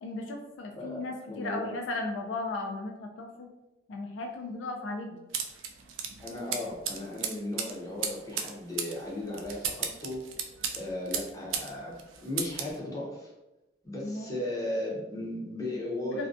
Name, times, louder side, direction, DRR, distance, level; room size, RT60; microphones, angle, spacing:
voice 1, 0.0-3.5 3.9-5.2 14.0-14.3 16.1-16.3, left 2 dB, 70° left, 3 dB, 0.3 m, -36 dB
voice 2, 1.3-1.7 6.2-10.2 10.7-13.3 13.8-16.3, left 1 dB, 20° left, -4 dB, 0.6 m, -36 dB
sound 1, 5.3-11.7 12.0-12.8, right 7 dB, 85° right, 0.3 m, -35 dB
2.4 x 2.2 x 2.4 m, 0.97 s
head